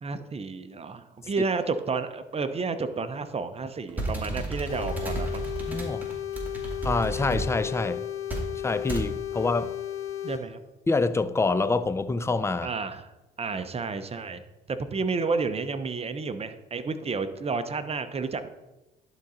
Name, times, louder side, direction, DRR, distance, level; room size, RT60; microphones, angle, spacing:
voice 1, 0.0-5.5 10.2-10.6 12.6-13.1 13.4-14.4 14.7-18.5, right 4 dB, 30° right, 0.8 m, -31 dB
sound 1, 3.9-7.5 8.3-8.5 8.9-9.1, right 2 dB, 10° right, 2.4 m, -32 dB
sound 2, 4.7-10.4, left 11 dB, 70° left, 1.1 m, -34 dB
voice 2, 5.7-6.1 6.8-8.1 8.6-9.7 10.9-12.7, left 3 dB, 15° left, 0.4 m, -26 dB
11.0 x 3.9 x 4.3 m
supercardioid pair, 75°, 21 cm